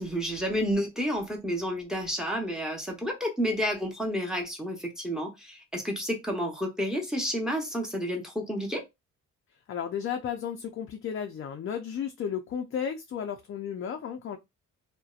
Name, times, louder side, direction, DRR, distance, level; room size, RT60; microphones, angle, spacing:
voice 1, 0.0-8.8, equal, ahead, 0.9 m, -30 dB
voice 2, 9.7-14.4, left 8 dB, 45° left, 0.5 m, -33 dB
2.6 x 2.1 x 2.4 m
cardioid pair, 90°, 30 cm